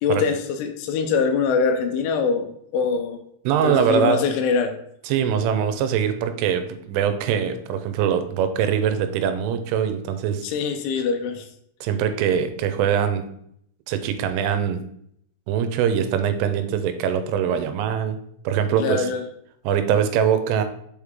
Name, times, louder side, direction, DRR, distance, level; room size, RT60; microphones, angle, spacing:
voice 1, 0.0-3.2 3.6-4.8 10.4-11.5 18.8-19.2, left 5 dB, 85° left, 6 dB, 3.1 m, -23 dB
voice 2, 3.5-4.2 5.1-10.5 11.8-13.2 13.9-14.8 15.5-18.2 18.4-19.1 19.6-20.6, right 8 dB, 90° right, 9 dB, 3.2 m, -22 dB
7.2 x 4.9 x 3.6 m, 0.70 s
omnidirectional pair, 5.6 m